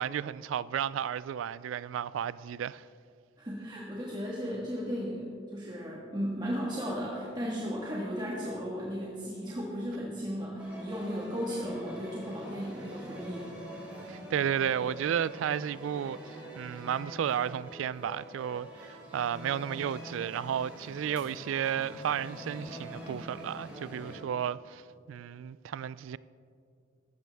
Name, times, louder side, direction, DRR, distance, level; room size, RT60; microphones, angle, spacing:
voice 1, 0.0-2.9 14.0-24.8 25.1-26.2, right 9 dB, 85° right, 0.3 m, -33 dB
voice 2, 3.4-13.5, equal, 20° right, 1.5 m, -35 dB
sound 1, 10.6-24.2, equal, 5° right, 3.0 m, -45 dB
15.0 x 12.5 x 3.5 m
head